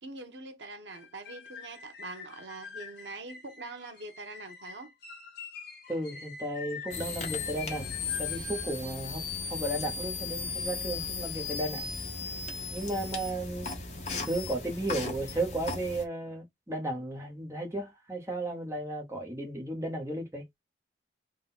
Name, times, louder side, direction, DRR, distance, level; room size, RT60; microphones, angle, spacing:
voice 1, 0.0-4.9 6.1-6.2, right 2 dB, 90° right, 0.9 m, -44 dB
sound 1, 1.0-8.8, left 5 dB, 70° left, 1.3 m, -46 dB
voice 2, 5.9-7.9 8.2-9.2 9.5-11.9 12.7-13.7 14.3-20.4, right 1 dB, 15° right, 1.0 m, -34 dB
sound 2, 6.9-16.0, left 4 dB, 40° left, 1.2 m, -36 dB
3.9 x 2.3 x 4.1 m
head